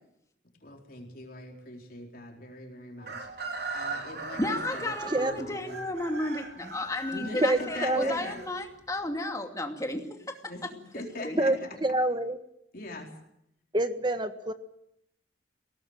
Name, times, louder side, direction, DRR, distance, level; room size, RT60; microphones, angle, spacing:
voice 1, 0.6-5.8 7.1-8.4 10.5-11.7 12.7-13.1, left 2 dB, 50° left, 1 dB, 4.2 m, -42 dB
Chicken rooster, 3.0-9.0, right 3 dB, 55° right, 4.1 m, -39 dB
voice 2, 4.4-10.4 11.2-11.4, left 1 dB, 15° left, 4 dB, 2.6 m, -33 dB
voice 3, 7.4-8.2 11.4-12.4 13.7-14.5, right 1 dB, 25° right, 9 dB, 1.5 m, -26 dB
22.0 x 18.0 x 8.9 m, 0.79 s
head